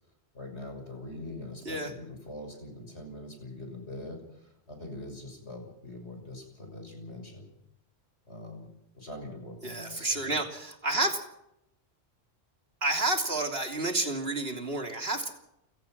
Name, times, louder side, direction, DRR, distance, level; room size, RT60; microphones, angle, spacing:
voice 1, 0.3-7.5 8.3-10.4, left 1 dB, 85° left, 4 dB, 6.6 m, -43 dB
voice 2, 9.6-11.2 12.8-15.3, right 2 dB, 65° right, 4 dB, 3.4 m, -30 dB
28.5 x 17.0 x 6.1 m, 0.81 s
omnidirectional pair, 1.1 m